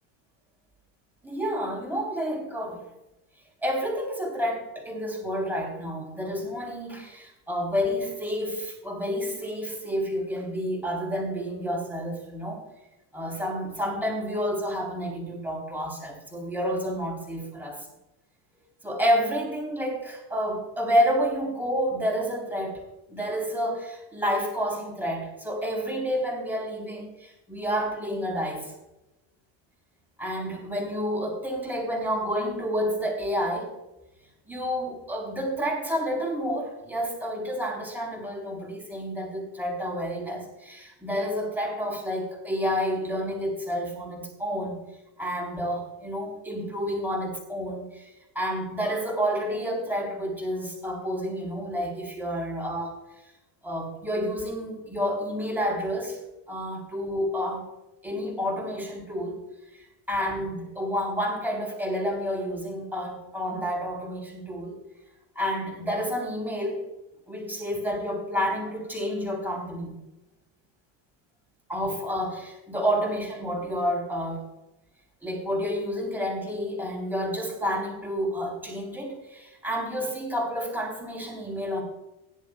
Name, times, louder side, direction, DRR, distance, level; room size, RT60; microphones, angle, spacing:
voice 1, 1.2-2.9 3.6-12.6 13.1-17.9 18.8-28.7 30.2-33.7 34.5-44.8 45.2-53.0 53.6-56.2 56.5-57.7 58.0-59.4 59.7-64.8 65.4-66.9 67.3-69.9 71.7-74.5 75.2-81.8, equal, 5° right, -1 dB, 3.9 m, -29 dB
16.5 x 11.0 x 2.4 m, 0.95 s
cardioid pair, 150°, 49 cm